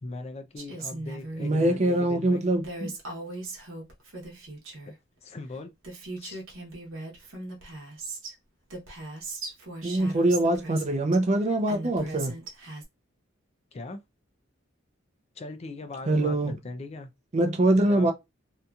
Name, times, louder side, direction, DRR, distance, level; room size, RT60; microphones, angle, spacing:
voice 1, 0.0-2.4 5.2-5.7 6.2-6.4 13.7-14.0 15.4-17.1 17.8-18.1, left 2 dB, 30° left, 0.4 m, -39 dB
Female speech woman speaking, 0.6-1.8 2.6-4.9 5.5-5.6 5.8-8.3 8.7-11.2 11.7-12.8, right 2 dB, 85° right, 1.0 m, -39 dB
voice 2, 1.4-2.9 9.8-12.3 16.1-16.5 17.3-18.1, right 1 dB, 35° right, 0.5 m, -23 dB
2.8 x 2.6 x 2.3 m
head